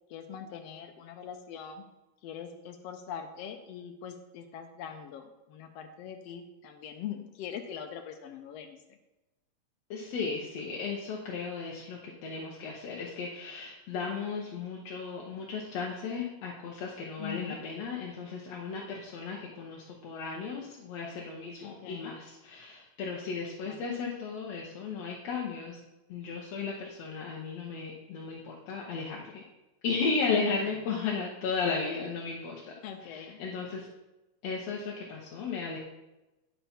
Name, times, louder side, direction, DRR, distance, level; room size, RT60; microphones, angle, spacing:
voice 1, 0.1-1.8 2.2-8.8 17.2-17.6 21.6-22.1 23.6-23.8 30.5-30.6 32.8-33.4, left 8 dB, 90° left, 5 dB, 1.4 m, -42 dB
voice 2, 9.9-25.8 26.1-29.5 29.8-32.7 33.0-33.9 34.4-35.8, left 4 dB, 65° left, -3 dB, 1.9 m, -35 dB
10.0 x 7.0 x 4.3 m, 1.0 s
omnidirectional pair, 3.6 m